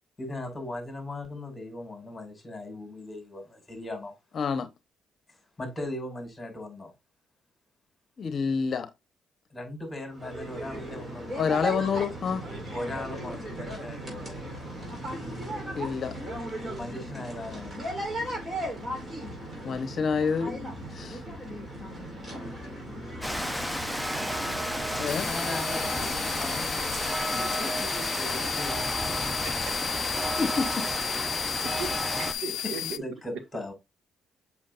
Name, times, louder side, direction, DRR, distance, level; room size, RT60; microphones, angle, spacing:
voice 1, 0.2-4.1 5.3-6.9 9.5-11.4 12.7-14.4 16.6-17.8 24.9-26.8 27.3-28.8 32.8-33.7, left 1 dB, 15° left, 5.2 m, -38 dB
voice 2, 4.4-4.7 8.2-8.9 11.4-12.4 15.7-16.2 19.6-21.2 25.0-25.3 30.4-30.8, left 5 dB, 50° left, 0.9 m, -28 dB
sound 1, 10.1-28.6, right 1 dB, 30° right, 4.5 m, -37 dB
Rain, 23.2-32.3, equal, ahead, 0.8 m, -31 dB
sound 2, 25.1-33.0, left 12 dB, 80° left, 0.4 m, -34 dB
voice 3, 29.4-29.8 30.1-30.2 31.8-32.1 32.4-33.0, right 5 dB, 80° right, 1.5 m, -38 dB
7.4 x 6.1 x 2.5 m
cardioid pair, 90°, 0 cm